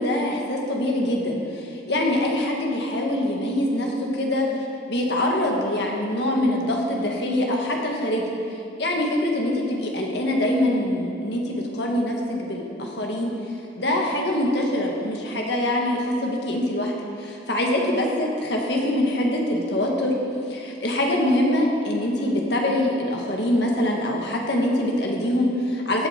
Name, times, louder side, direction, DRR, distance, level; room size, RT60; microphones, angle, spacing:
voice 1, 0.0-4.5 4.9-8.3 8.8-13.3 13.7-16.9 17.2-20.1 20.4-26.1, left 1 dB, 65° left, 0 dB, 1.7 m, -24 dB
16.0 x 8.0 x 4.4 m, 2.7 s
head